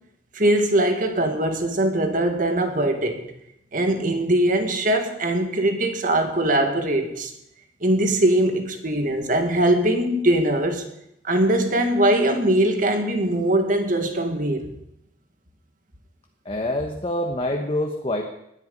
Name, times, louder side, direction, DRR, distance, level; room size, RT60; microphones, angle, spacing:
voice 1, 0.4-3.2 3.7-7.3 7.8-10.8 11.2-14.7, right 1 dB, 50° right, 6 dB, 1.9 m, -21 dB
voice 2, 16.4-18.2, left 1 dB, 30° left, 2 dB, 1.2 m, -26 dB
19.0 x 10.5 x 5.4 m, 0.81 s
head